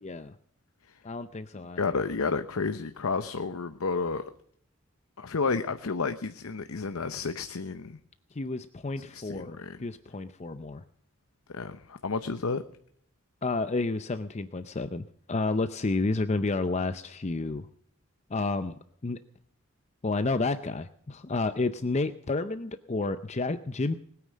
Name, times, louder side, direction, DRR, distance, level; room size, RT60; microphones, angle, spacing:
voice 1, 0.0-0.3 1.0-1.8 8.3-10.8 13.4-17.7 18.3-18.7 19.0-19.2 20.0-23.9, left 3 dB, 30° left, 11 dB, 0.5 m, -30 dB
voice 2, 1.8-4.3 5.2-8.0 9.1-9.8 11.5-12.6, left 4 dB, 85° left, 9 dB, 0.8 m, -31 dB
20.0 x 9.3 x 6.3 m, 0.68 s
head